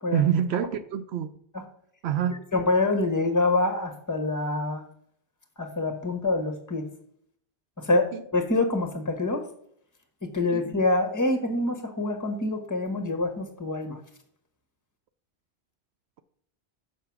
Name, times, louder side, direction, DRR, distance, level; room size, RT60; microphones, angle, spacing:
voice 1, 0.1-1.3 2.0-2.4 8.1-8.2 10.5-10.6, right 9 dB, 80° right, 10 dB, 0.8 m, -26 dB
voice 2, 2.5-4.8 5.6-6.9 7.8-9.4 10.3-14.0, left 2 dB, 15° left, 5 dB, 1.2 m, -26 dB
6.9 x 4.6 x 5.9 m, 0.65 s
omnidirectional pair, 1.1 m